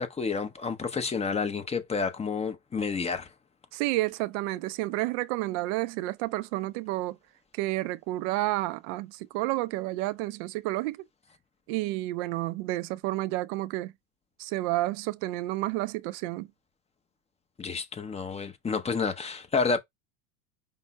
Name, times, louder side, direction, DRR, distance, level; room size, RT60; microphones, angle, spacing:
voice 1, 0.0-3.3 17.6-19.8, left 5 dB, 15° left, 0.7 m, -30 dB
voice 2, 3.7-7.2 7.5-11.0 11.7-13.9 14.4-16.5, right 18 dB, 60° right, 0.5 m, -30 dB
5.4 x 2.1 x 4.5 m
supercardioid pair, 110°, 41 cm